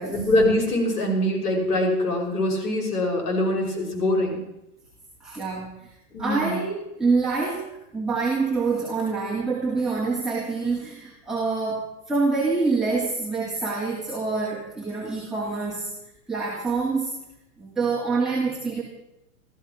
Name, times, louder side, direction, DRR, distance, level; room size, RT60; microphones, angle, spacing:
voice 1, 0.0-4.4 6.1-6.6, left 1 dB, 80° left, 1 dB, 5.9 m, -23 dB
voice 2, 5.2-5.9 6.2-15.9 16.3-17.2 17.6-18.8, right 4 dB, ahead, -5 dB, 2.6 m, -26 dB
15.5 x 14.0 x 5.9 m, 0.88 s
hypercardioid pair, 130°, 45 cm